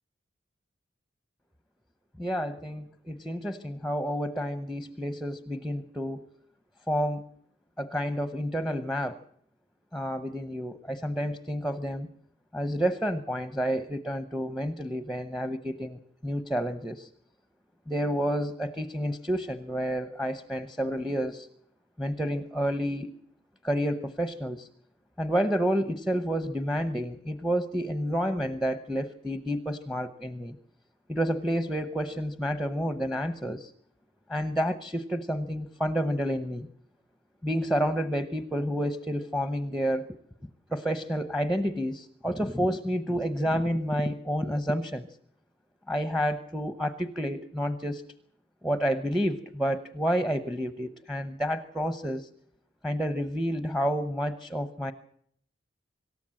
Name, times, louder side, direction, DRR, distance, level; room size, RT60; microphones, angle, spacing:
voice 1, 2.2-6.3 6.9-7.2 7.8-9.2 9.9-12.1 12.5-17.1 17.9-21.5 22.0-23.1 23.6-24.7 25.2-30.6 31.1-33.7 34.3-36.7 37.4-40.1 40.7-45.1 45.9-48.0 48.6-52.3 52.8-54.9, equal, ahead, 10 dB, 0.8 m, -29 dB
25.5 x 13.5 x 7.7 m, 0.68 s
head